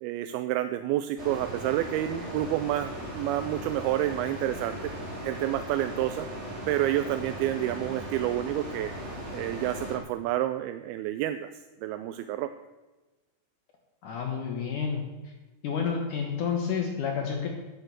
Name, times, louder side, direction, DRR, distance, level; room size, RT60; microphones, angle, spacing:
voice 1, 0.0-4.9 5.2-6.3 6.7-8.9 9.3-11.5 11.8-12.5, right 13 dB, 80° right, 10 dB, 2.3 m, -29 dB
sound 1, 1.2-10.0, right 1 dB, 15° right, 3.4 m, -38 dB
voice 2, 14.0-15.3 15.6-17.5, left 6 dB, 60° left, 2 dB, 2.4 m, -30 dB
11.0 x 9.2 x 7.8 m, 1.2 s
omnidirectional pair, 4.7 m